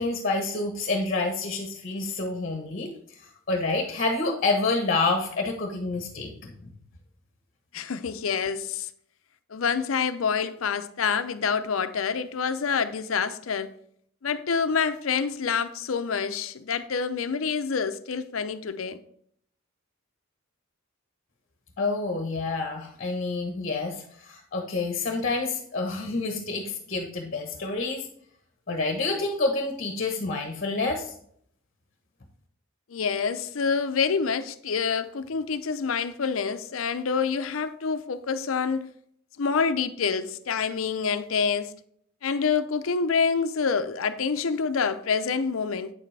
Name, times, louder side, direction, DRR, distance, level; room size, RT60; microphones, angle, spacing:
voice 1, 0.0-3.2 3.5-6.7 21.8-28.1 28.7-31.1, left 3 dB, 45° left, 1.1 m, -28 dB
voice 2, 7.7-8.9 9.5-13.7 14.2-19.0 32.9-38.9 39.4-41.7 42.2-45.9, left 5 dB, 70° left, 0.6 m, -27 dB
8.9 x 7.5 x 3.3 m
head